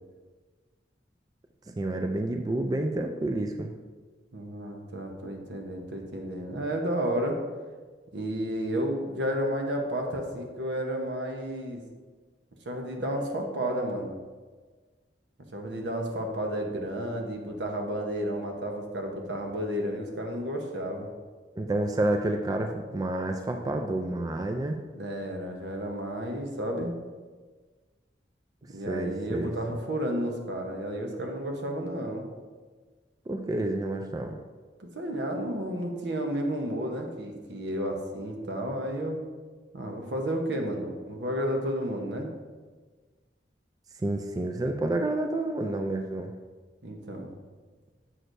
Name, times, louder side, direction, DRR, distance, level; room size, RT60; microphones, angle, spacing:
voice 1, 1.8-3.7 21.6-24.8 28.9-29.5 33.3-34.4 44.0-46.3, right 2 dB, 20° right, 4 dB, 0.3 m, -29 dB
voice 2, 4.3-7.4 8.1-11.8 12.7-14.1 15.5-21.1 24.9-26.9 28.7-32.3 34.8-39.2 39.7-42.3 46.8-47.3, equal, 80° right, 2 dB, 1.0 m, -32 dB
7.6 x 6.3 x 2.6 m, 1.4 s
head